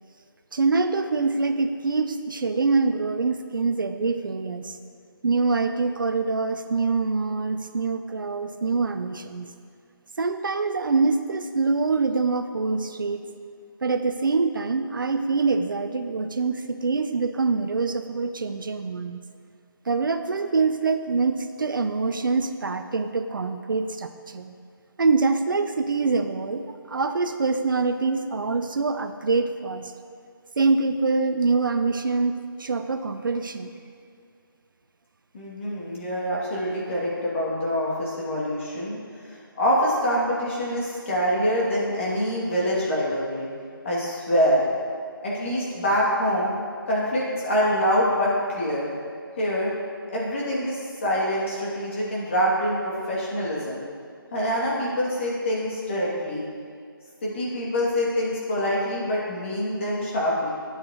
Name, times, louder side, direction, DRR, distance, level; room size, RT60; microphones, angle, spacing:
voice 1, 0.5-4.8 5.2-9.5 10.2-13.2 13.8-19.2 19.9-24.5 25.0-29.9 30.6-33.7, right 4 dB, 60° right, 8 dB, 0.6 m, -25 dB
voice 2, 35.3-39.0 39.5-43.5 43.8-44.6 45.2-46.5 46.9-48.9 49.4-49.7 50.1-53.8 54.3-56.4 57.2-60.5, equal, 35° left, -6 dB, 2.5 m, -25 dB
12.5 x 8.1 x 3.0 m, 2.3 s
figure-of-eight pair, 165°, 12 cm